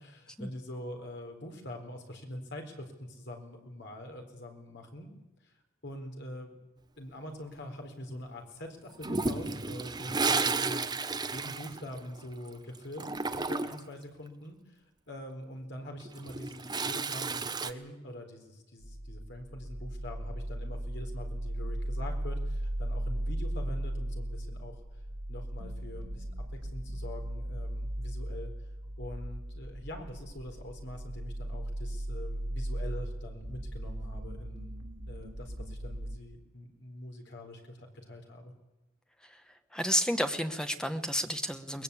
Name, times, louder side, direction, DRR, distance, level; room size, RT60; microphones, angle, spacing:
voice 1, 0.0-5.1 5.4-5.5 5.8-6.6 7.0-25.0 25.3-26.3 26.6-28.5 29.0-34.8 35.1-38.5, left 1 dB, 55° left, 3 dB, 4.2 m, -44 dB
Toilet flush, 9.0-12.5 12.7-13.9 16.0-17.7, right 4 dB, 20° right, 0.8 m, -32 dB
sound 1, 18.8-36.2, right 1 dB, 60° right, 2.8 m, -37 dB
voice 2, 39.7-41.8, equal, 5° left, 8 dB, 1.1 m, -31 dB
22.5 x 20.5 x 8.5 m, 0.99 s
head